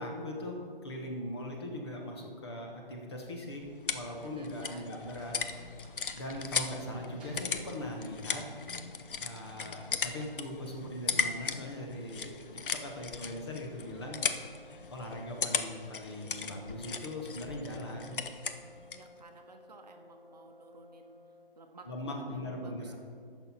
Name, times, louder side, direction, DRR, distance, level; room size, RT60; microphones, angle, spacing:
voice 1, 0.0-5.4 6.1-8.5 9.2-12.4 12.7-14.2 14.9-18.2 21.8-23.0, left 1 dB, 25° left, 0 dB, 1.0 m, -40 dB
sound 1, 3.3-19.1, left 5 dB, 65° left, 0.7 m, -38 dB
voice 2, 4.2-5.0 15.0-15.3 18.9-21.2 21.6-21.9 22.2-23.0, right 3 dB, 45° right, 4 dB, 0.9 m, -54 dB
sound 2, 5.2-6.8 7.2-8.3 8.6-10.7 11.1-11.2 11.5-13.9, right 2 dB, 10° right, 0.7 m, -57 dB
Brass instrument, 13.8-21.6, left 1 dB, 5° left, 2.5 m, -57 dB
14.5 x 6.3 x 4.1 m, 2.3 s
figure-of-eight pair, 165°, 29 cm